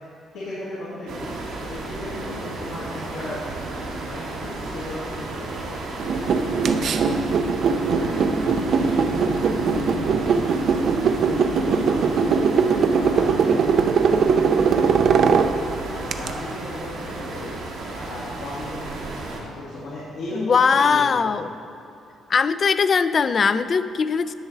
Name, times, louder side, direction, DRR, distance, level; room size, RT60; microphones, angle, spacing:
voice 1, 0.3-1.3 1.7-3.4 3.9-6.9 7.5-10.4 11.2-12.7 13.0-13.3 13.8-15.4 15.8-17.5 17.9-21.4, left 1 dB, 85° left, -9 dB, 1.9 m, -36 dB
sound 1, 1.1-19.4, right 2 dB, 90° right, 1.7 m, -34 dB
sound 2, 6.0-16.3, right 5 dB, 65° right, 0.5 m, -20 dB
voice 2, 20.3-21.5 22.3-24.3, left 5 dB, 45° left, 13 dB, 0.3 m, -20 dB
11.0 x 6.0 x 4.0 m, 2.9 s
cardioid pair, 90°, 0 cm